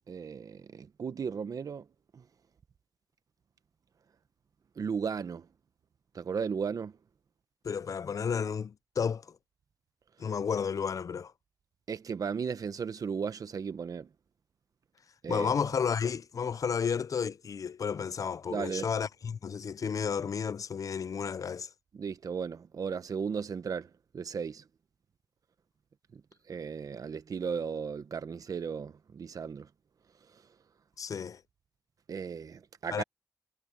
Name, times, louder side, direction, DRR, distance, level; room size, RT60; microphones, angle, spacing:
voice 1, 0.1-1.9 2.1-2.2 4.8-5.5 6.1-7.0 10.2-10.3 11.9-14.1 15.2-15.5 18.5-18.9 21.9-24.6 26.1-29.7 30.3-30.4 32.1-33.0, right 6 dB, 85° right, 1.0 m, -36 dB
voice 2, 7.6-9.4 10.2-11.3 15.3-21.7 31.0-31.4 32.9-33.0, left 6 dB, 70° left, 0.5 m, -32 dB
wide cardioid pair, 85°, 6 cm